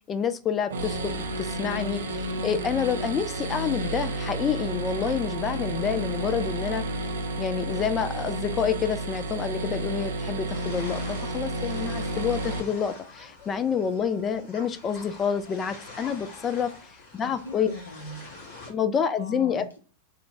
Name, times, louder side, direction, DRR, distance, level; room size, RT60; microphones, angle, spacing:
voice 1, 0.1-6.8 7.4-16.7 17.1-17.7 18.7-19.6, left 7 dB, 25° left, 0.3 m, -28 dB
sound 1, 0.7-12.6, right 1 dB, 65° right, 0.4 m, -31 dB
sound 2, 10.5-18.7, left 3 dB, 45° left, 1.1 m, -45 dB
voice 2, 17.2-18.2 19.2-19.8, left 2 dB, 75° left, 0.6 m, -40 dB
3.1 x 2.0 x 3.4 m
figure-of-eight pair, 90°, 0 cm